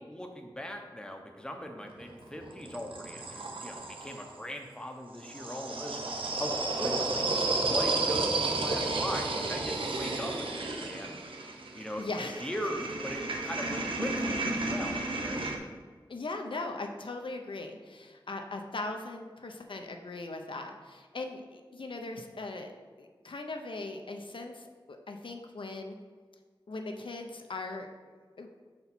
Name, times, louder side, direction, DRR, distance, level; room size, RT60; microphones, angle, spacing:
voice 1, 0.0-6.0 6.3-11.2 11.7-12.1 12.4-15.5, equal, 10° left, 3 dB, 0.7 m, -40 dB
sound 1, 1.9-4.3 5.1-15.6, right 2 dB, 85° right, 0.7 m, -32 dB
voice 2, 12.0-12.5 16.1-22.7 23.0-26.0 26.7-27.9 28.4-28.6, left 2 dB, 70° left, 4 dB, 0.5 m, -39 dB
5.5 x 4.3 x 4.1 m, 1.5 s
wide cardioid pair, 75°, 9 cm